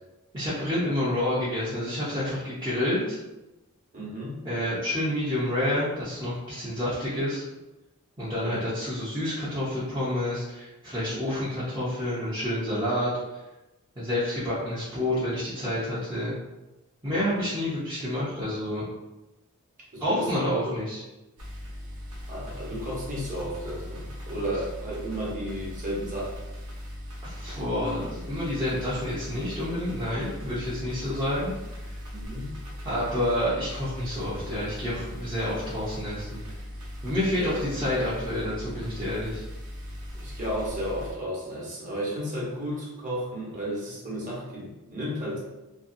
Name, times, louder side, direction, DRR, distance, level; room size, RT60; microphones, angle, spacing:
voice 1, 0.3-3.2 4.4-7.4 8.2-13.1 14.0-16.4 17.0-18.8 20.0-21.0 27.2-31.5 32.8-36.4 37.0-39.4, left 1 dB, 20° right, -11 dB, 0.7 m, -29 dB
voice 2, 3.9-4.3 8.4-8.6 17.0-17.5 19.9-20.4 22.3-26.4 32.1-32.5 37.4-37.5 40.2-45.4, equal, 35° right, -5 dB, 1.0 m, -33 dB
sound 1, 21.4-41.1, equal, 80° right, 0.8 m, -39 dB
2.8 x 2.6 x 2.6 m, 1.0 s
head